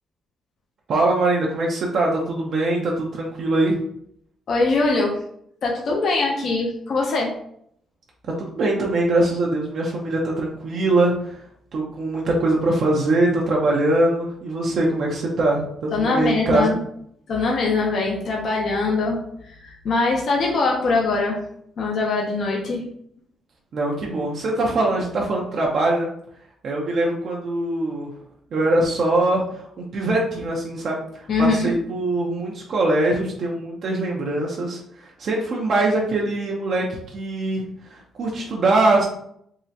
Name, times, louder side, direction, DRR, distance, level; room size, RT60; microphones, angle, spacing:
voice 1, 0.9-3.8 8.4-11.4 11.7-16.7 23.7-26.1 26.6-28.1 28.5-34.8 35.2-37.6 37.9-39.1, right 2 dB, 60° right, -2 dB, 0.6 m, -22 dB
voice 2, 4.5-5.1 5.6-7.3 15.9-16.8 17.3-19.2 19.6-21.4 21.8-22.8 31.3-31.7, left 3 dB, 60° left, -1 dB, 0.6 m, -22 dB
3.6 x 2.1 x 2.7 m, 0.70 s
cardioid pair, 90°, 0 cm